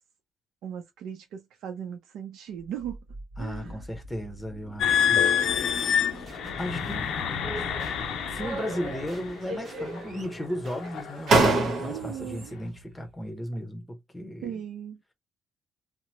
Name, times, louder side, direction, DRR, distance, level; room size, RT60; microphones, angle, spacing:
voice 1, 0.6-3.0 3.4-3.9 11.8-12.6 14.4-15.0, right 9 dB, 85° right, 0.5 m, -38 dB
sound 1, 2.5-13.6, right 1 dB, 40° right, 1.1 m, -44 dB
voice 2, 3.4-5.4 6.6-7.1 8.3-14.6, equal, 10° left, 0.9 m, -35 dB
sound 2, 4.8-9.3 9.9-10.2 10.8-11.1, left 8 dB, 80° left, 0.4 m, -27 dB
sound 3, 7.4-8.0 8.4-9.2 9.4-10.2 10.8-10.9 11.3-12.2, right 3 dB, 70° right, 1.0 m, -27 dB
2.8 x 2.0 x 2.8 m
cardioid pair, 90°, 0 cm